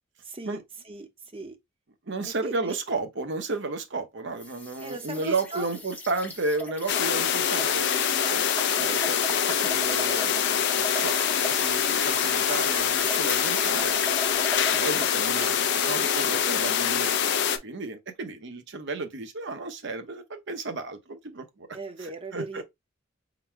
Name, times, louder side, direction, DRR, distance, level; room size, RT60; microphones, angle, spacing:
voice 1, 0.2-1.6 2.2-2.8 4.8-5.7 16.1-16.8 17.2-17.6 21.7-22.6, right 2 dB, 25° right, 0.7 m, -39 dB
voice 2, 2.1-8.4 8.8-14.0 14.7-17.2 17.6-21.7 22.0-22.6, right 3 dB, 60° right, 0.8 m, -33 dB
sound 1, 4.4-15.2, left 1 dB, 10° left, 0.7 m, -39 dB
sound 2, 6.9-17.6, left 8 dB, 55° left, 0.5 m, -25 dB
4.0 x 2.1 x 4.5 m
head